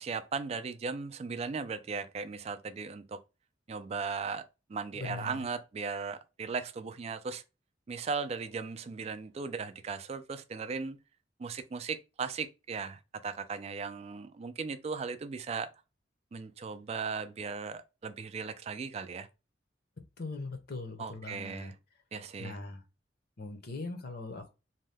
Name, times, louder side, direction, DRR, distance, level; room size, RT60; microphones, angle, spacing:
voice 1, 0.0-3.2 3.7-7.4 7.9-11.0 11.4-15.7 16.3-19.3 21.0-21.7 22.1-22.5, right 5 dB, 35° right, 0.3 m, -37 dB
voice 2, 4.9-5.4 20.2-21.7 22.4-22.8 23.4-24.5, left 3 dB, 55° left, 0.7 m, -40 dB
2.7 x 2.2 x 3.3 m
head